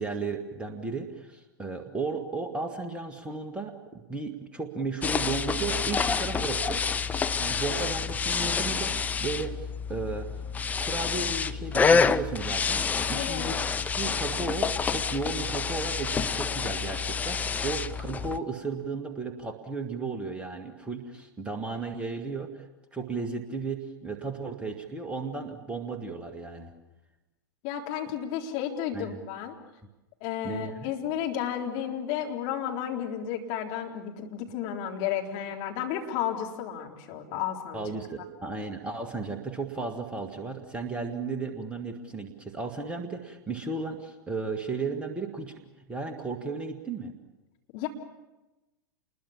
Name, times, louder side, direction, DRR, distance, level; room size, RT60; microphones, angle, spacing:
voice 1, 0.0-6.8 7.4-10.3 10.8-12.8 13.1-13.6 13.9-26.7 28.9-29.2 30.4-30.9 37.7-45.6 45.9-47.1, right 4 dB, 10° right, 4 dB, 2.0 m, -34 dB
sound 1, 5.0-18.4, left 5 dB, 15° left, 0.8 m, -28 dB
voice 2, 13.1-13.5 27.6-29.6 30.2-37.8 47.7-47.9, left 9 dB, 40° left, 1 dB, 3.9 m, -32 dB
28.0 x 22.0 x 7.3 m, 1.0 s
figure-of-eight pair, 100°, 12 cm